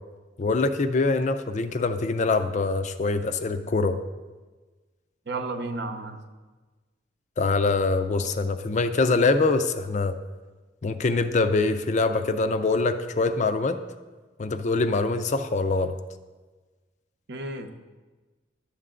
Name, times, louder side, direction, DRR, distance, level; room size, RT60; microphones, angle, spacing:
voice 1, 0.4-4.0 7.4-10.2 10.8-13.8 14.4-15.9, left 3 dB, 35° left, 9 dB, 0.4 m, -24 dB
voice 2, 5.3-6.2 17.3-17.7, right 2 dB, 55° right, 6 dB, 0.7 m, -32 dB
11.0 x 6.7 x 3.7 m, 1.3 s
head